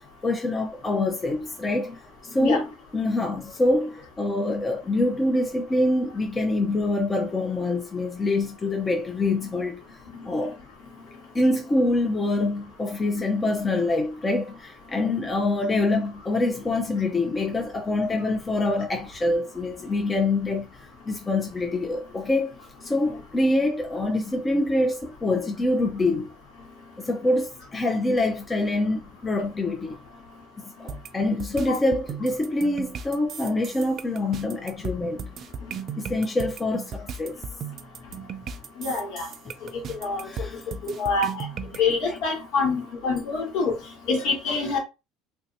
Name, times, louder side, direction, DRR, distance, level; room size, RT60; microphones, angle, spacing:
voice 1, 0.2-1.9 2.3-9.8 10.2-10.6 11.3-20.7 21.1-22.5 22.8-26.3 27.0-30.0 30.8-35.2 36.0-37.4 40.3-40.6 41.7-42.0, left 2 dB, 20° left, 0.6 m, -25 dB
sound 1, 30.9-41.8, right 5 dB, 50° right, 0.4 m, -36 dB
voice 2, 38.8-39.3 39.7-40.3 41.0-41.5 41.8-43.7 44.1-44.8, left 4 dB, 75° left, 1.9 m, -26 dB
3.3 x 2.8 x 2.7 m
supercardioid pair, 100°, 0 cm